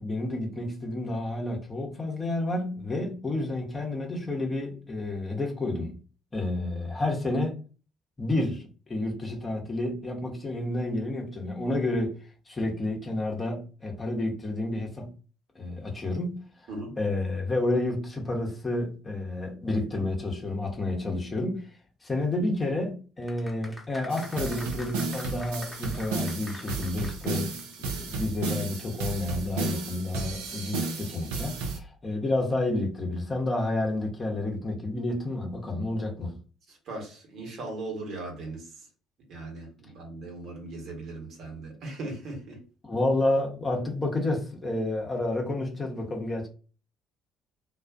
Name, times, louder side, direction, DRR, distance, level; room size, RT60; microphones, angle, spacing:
voice 1, 0.0-5.9 6.3-7.5 8.2-12.1 12.5-15.1 15.5-16.4 17.0-21.7 22.0-36.4 42.8-46.5, left 2 dB, 25° left, 0.9 m, -30 dB
sound 1, 23.2-27.7 28.0-28.1, left 1 dB, ahead, 1.0 m, -45 dB
sound 2, 24.1-31.8, right 4 dB, 75° right, 0.5 m, -33 dB
voice 2, 36.7-38.9 39.3-42.6, right 2 dB, 55° right, 1.1 m, -38 dB
2.4 x 2.3 x 2.4 m
figure-of-eight pair, 50°, 0 cm